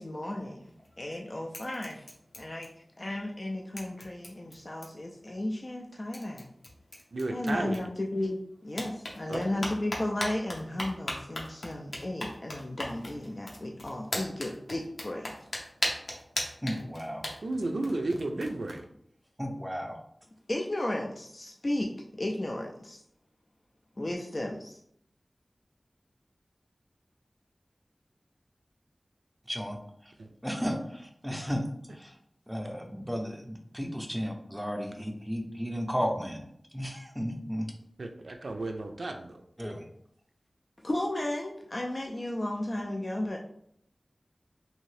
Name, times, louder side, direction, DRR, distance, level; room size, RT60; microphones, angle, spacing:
voice 1, 0.0-2.1 2.4-2.7 3.0-6.5 7.3-15.4 20.5-23.0 24.0-24.8 40.8-43.4, left 1 dB, 45° left, 0 dB, 0.3 m, -34 dB
sound 1, 0.6-1.2 1.5-3.1 3.3-3.4 3.8-5.1 5.8-5.9 6.1-8.3 8.7-18.8, left 1 dB, 75° left, 0.7 m, -39 dB
voice 2, 7.1-7.8 9.3-9.6 17.4-18.9 30.2-30.3 38.0-39.4, right 2 dB, 85° right, 4 dB, 0.4 m, -33 dB
voice 3, 16.6-17.2 19.4-20.0 29.5-29.8 30.4-31.6 31.9-32.1 32.5-36.5 36.7-37.6 39.6-39.8, equal, 5° right, 2 dB, 0.5 m, -34 dB
2.7 x 2.7 x 3.2 m, 0.70 s
wide cardioid pair, 65°, 0 cm